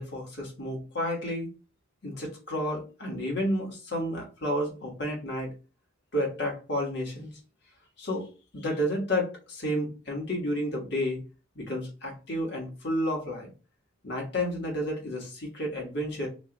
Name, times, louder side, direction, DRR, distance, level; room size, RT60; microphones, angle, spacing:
voice 1, 0.0-1.5 2.0-5.5 6.1-7.3 8.0-8.3 8.5-11.2 11.5-13.5 14.0-16.3, equal, 55° left, -1 dB, 1.4 m, -31 dB
3.1 x 2.6 x 3.8 m, 0.33 s
head